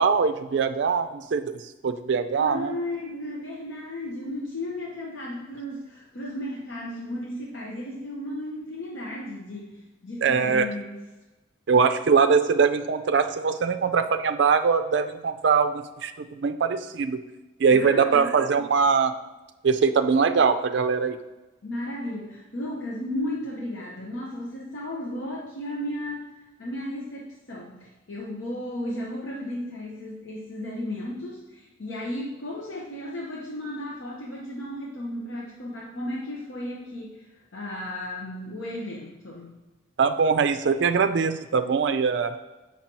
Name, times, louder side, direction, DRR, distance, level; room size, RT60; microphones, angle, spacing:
voice 1, 0.0-2.7 10.2-10.7 11.7-17.2 17.6-19.1 19.6-21.2 40.0-42.4, right 5 dB, 60° right, 8 dB, 0.4 m, -22 dB
voice 2, 2.4-9.7 10.0-11.0 17.7-18.3 21.6-26.2 26.6-39.5, left 1 dB, 70° left, -4 dB, 1.0 m, -34 dB
7.4 x 5.8 x 2.9 m, 1.1 s
head